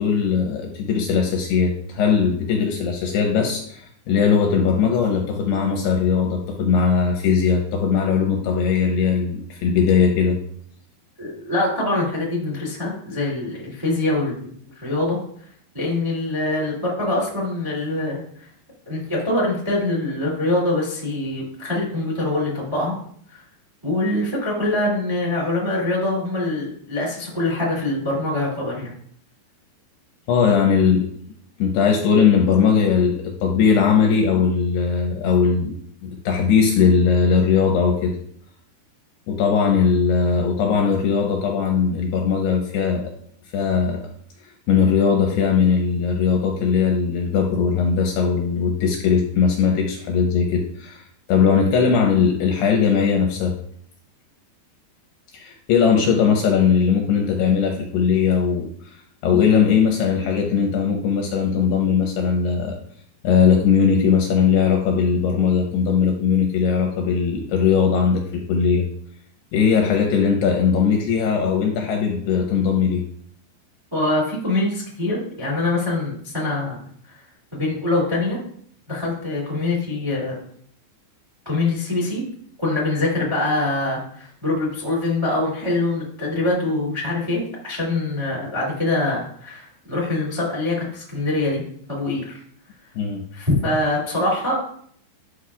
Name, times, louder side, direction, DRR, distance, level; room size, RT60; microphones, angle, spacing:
voice 1, 0.0-10.4 30.3-31.1 31.6-35.7 36.0-38.2 39.3-43.1 43.5-44.0 44.7-53.6 55.3-62.8 63.2-68.9 69.5-73.0 93.0-93.2, left 6 dB, 80° left, 1 dB, 2.5 m, -19 dB
voice 2, 11.2-14.5 14.7-15.2 15.7-18.2 18.8-22.9 23.3-23.4 23.8-28.9 73.9-76.8 77.5-78.4 78.9-80.4 81.4-82.2 82.6-91.6 91.9-92.4 93.3-94.5, left 2 dB, 20° right, -3 dB, 0.7 m, -24 dB
11.5 x 6.1 x 2.4 m, 0.63 s
omnidirectional pair, 5.4 m